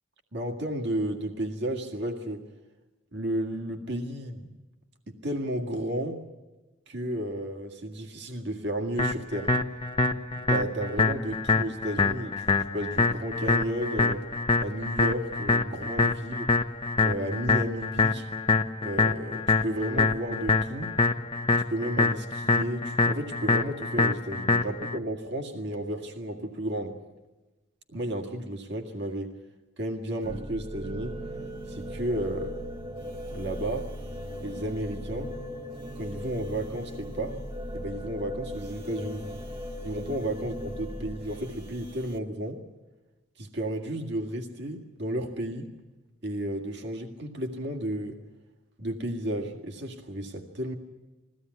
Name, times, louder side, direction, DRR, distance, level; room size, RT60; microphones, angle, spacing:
voice 1, 0.3-2.5 3.1-4.5 5.1-6.2 6.9-9.5 10.3-14.3 14.6-16.5 17.0-18.3 18.8-21.0 21.6-27.0 27.9-29.4 29.8-31.2 31.7-32.6 33.3-33.9 34.4-35.4 36.0-37.4 37.7-39.3 39.8-42.6 43.4-45.7 46.2-48.2 48.8-50.7, right 1 dB, 60° right, 2 dB, 2.0 m, -33 dB
sound 1, 9.0-25.0, left 3 dB, 25° left, 0.8 m, -25 dB
sound 2, 30.2-42.2, equal, 30° right, 1.5 m, -38 dB
22.0 x 16.0 x 9.4 m, 1.1 s
head